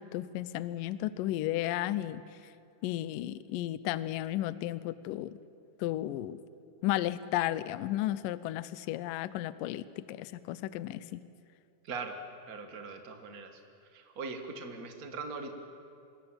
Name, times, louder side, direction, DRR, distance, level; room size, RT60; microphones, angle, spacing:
voice 1, 0.0-2.2 2.8-5.3 5.8-6.4 6.8-11.2, left 14 dB, 80° left, 16 dB, 2.0 m, -33 dB
voice 2, 11.8-12.2 12.5-13.5 13.9-15.5, right 4 dB, 65° right, 5 dB, 0.8 m, -40 dB
25.5 x 22.0 x 8.9 m, 2.5 s
omnidirectional pair, 4.8 m